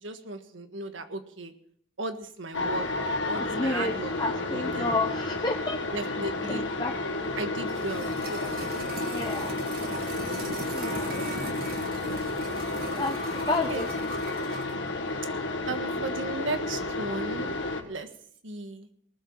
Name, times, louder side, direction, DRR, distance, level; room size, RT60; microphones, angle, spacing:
voice 1, 0.0-1.5 2.0-2.8 3.3-5.0 5.9-6.6 7.4-9.0 13.3-13.9 15.7-17.5 17.8-18.1 18.4-18.9, right 2 dB, 85° right, 8 dB, 1.6 m, -36 dB
sound 1, 2.5-17.8, left 2 dB, 80° left, 1.7 m, -31 dB
voice 2, 3.4-6.2 6.5-6.9 7.2-7.4 9.1-9.5 10.7-11.2 13.0-13.9, left 2 dB, 20° left, 4 dB, 0.8 m, -31 dB
sound 2, 7.3-14.8 15.1-15.2, right 1 dB, 50° right, 1.7 m, -39 dB
19.0 x 7.9 x 7.1 m, 0.62 s
head